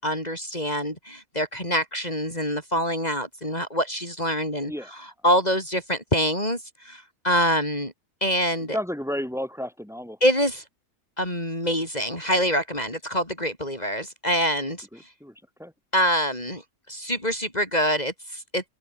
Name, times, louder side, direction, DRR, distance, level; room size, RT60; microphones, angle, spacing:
voice 1, 0.0-7.9 8.2-8.8 10.2-10.6 11.2-14.9 15.9-16.6 16.9-18.6, equal, 25° left, 6.8 m, -25 dB
voice 2, 8.7-10.2 14.9-15.3 15.6-15.7, equal, ahead, 7.8 m, -32 dB
open air
omnidirectional pair, 1.7 m